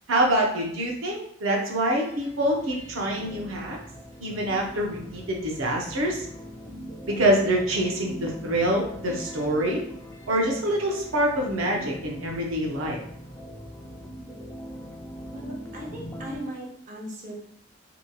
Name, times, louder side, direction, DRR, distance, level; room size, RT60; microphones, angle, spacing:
voice 1, 0.1-3.8 4.2-6.3 7.1-9.8 10.3-13.0, right 1 dB, 90° right, -1 dB, 0.6 m, -25 dB
sound 1, 1.8-16.4, equal, 15° left, 0.3 m, -41 dB
voice 2, 15.3-17.3, right 1 dB, 40° right, -3 dB, 0.6 m, -38 dB
2.8 x 2.6 x 2.2 m, 0.67 s
head